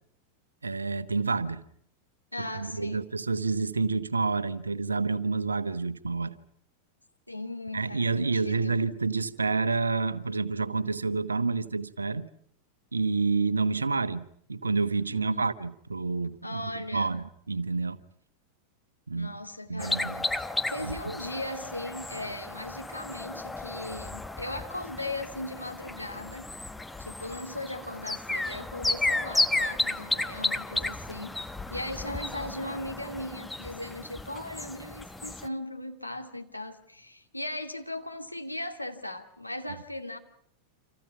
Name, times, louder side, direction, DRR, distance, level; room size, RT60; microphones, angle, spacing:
voice 1, 0.6-1.6 2.4-6.3 7.7-12.3 12.9-18.0 19.1-19.3 19.7-20.2 20.8-21.0, right 4 dB, 75° right, 1.2 m, -29 dB
voice 2, 2.3-3.1 7.3-8.8 15.1-15.5 16.4-17.1 19.1-26.5 27.0-31.4 31.7-40.2, left 1 dB, 90° left, 2.3 m, -38 dB
sound 1, 19.8-35.5, left 2 dB, 5° left, 1.0 m, -33 dB
29.5 x 27.0 x 5.9 m
figure-of-eight pair, 90°, 0 cm